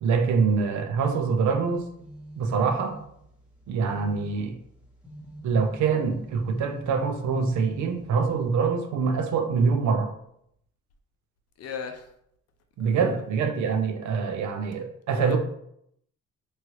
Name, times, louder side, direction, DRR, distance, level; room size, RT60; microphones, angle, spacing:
voice 1, 0.0-1.9 2.4-3.0 3.7-4.5 5.4-10.1 12.8-15.4, right 5 dB, 70° right, 0.5 m, -25 dB
sound 1, 1.7-8.6, right 1 dB, 5° right, 0.8 m, -45 dB
voice 2, 11.6-12.1 12.8-13.2 15.1-15.4, left 6 dB, 55° left, 0.5 m, -37 dB
3.0 x 2.3 x 3.0 m
cardioid pair, 90°, 30 cm